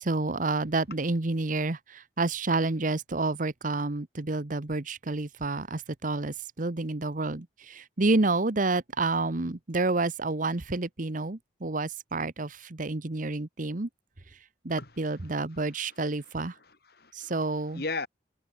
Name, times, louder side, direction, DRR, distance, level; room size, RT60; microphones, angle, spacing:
voice 1, 0.0-13.9 14.6-16.5 17.1-17.8, right 3 dB, 50° right, 1.1 m, -29 dB
voice 2, 15.2-18.1, left 3 dB, 60° left, 5.1 m, -40 dB
head